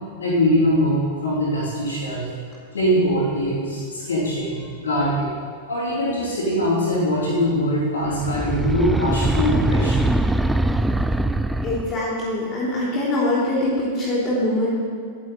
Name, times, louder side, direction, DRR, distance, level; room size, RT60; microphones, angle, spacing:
voice 1, 0.2-2.3 2.7-5.3 5.7-10.0, equal, 70° left, -7 dB, 3.1 m, -22 dB
sound 1, 8.1-12.1, right 1 dB, 5° right, 0.4 m, -22 dB
voice 2, 11.6-14.8, left 1 dB, 25° left, -11 dB, 3.4 m, -23 dB
11.0 x 10.0 x 4.3 m, 2.2 s
figure-of-eight pair, 95°, 0 cm